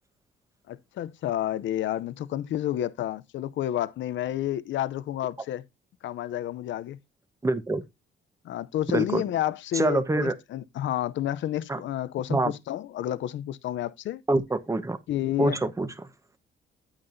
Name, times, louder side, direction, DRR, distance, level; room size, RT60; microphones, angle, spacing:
voice 1, 0.7-5.6 6.0-7.0 8.4-14.2 15.1-15.6, left 12 dB, 70° left, 0.7 m, -30 dB
voice 2, 7.4-7.8 8.9-9.2 9.7-10.3 11.7-11.8 12.3-12.5 14.3-15.0 15.4-16.1, right 2 dB, 15° right, 1.1 m, -25 dB
8.9 x 8.7 x 2.7 m
cardioid pair, 90°, 20 cm